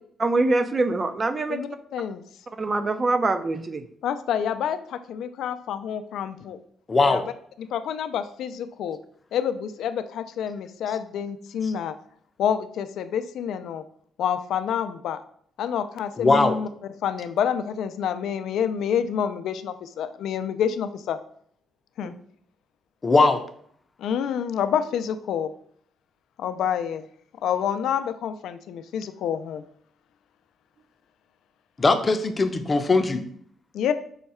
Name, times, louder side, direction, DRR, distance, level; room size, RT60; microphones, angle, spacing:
voice 1, 0.2-1.6 2.6-3.8 22.0-22.1, right 2 dB, 30° right, 11 dB, 0.4 m, -24 dB
voice 2, 1.5-2.2 4.0-6.6 7.1-7.2 7.6-9.0 9.3-12.0 12.4-13.8 14.2-15.2 15.6-21.2 22.0-22.1 24.0-25.5 26.4-27.1 27.4-29.6 33.7-33.9, left 8 dB, 75° left, 11 dB, 0.4 m, -28 dB
voice 3, 6.9-7.2 16.2-16.5 23.0-23.4 31.8-33.2, left 3 dB, 30° left, 8 dB, 0.5 m, -20 dB
5.5 x 2.3 x 4.2 m, 0.62 s
cardioid pair, 90°, 0 cm